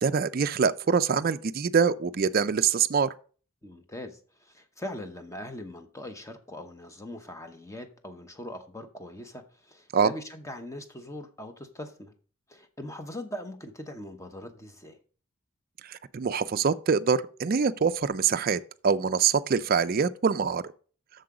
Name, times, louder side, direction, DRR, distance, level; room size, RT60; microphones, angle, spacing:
voice 1, 0.0-3.1 9.9-10.1 15.8-20.6, right 6 dB, 40° right, 0.4 m, -24 dB
voice 2, 3.6-12.1 12.5-15.0, left 1 dB, 15° left, 0.9 m, -41 dB
7.7 x 6.8 x 4.8 m
head